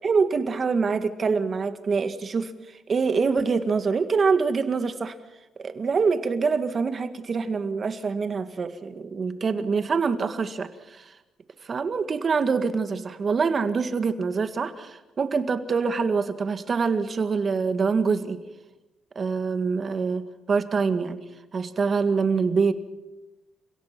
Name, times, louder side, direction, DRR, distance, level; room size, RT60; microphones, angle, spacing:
voice 1, 0.0-2.5 2.9-5.1 5.6-11.1 11.6-18.4 19.2-21.2 21.5-22.7, right 5 dB, 45° right, 9 dB, 1.9 m, -25 dB
30.0 x 17.0 x 6.1 m, 1.0 s
cardioid pair, 90°, 0 cm